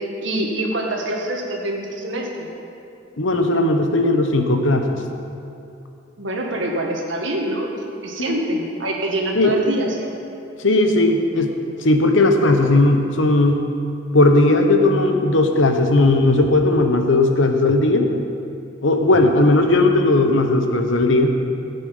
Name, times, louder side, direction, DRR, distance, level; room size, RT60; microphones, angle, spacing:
voice 1, 0.0-2.5 6.2-7.7 8.0-10.1, right 1 dB, 75° right, 0 dB, 1.8 m, -25 dB
voice 2, 3.2-5.0 8.2-8.4 9.3-9.6 10.6-11.5 11.8-13.6 14.1-18.1 18.8-21.3, left 2 dB, 85° left, 5 dB, 1.1 m, -17 dB
15.0 x 8.2 x 5.6 m, 2.6 s
head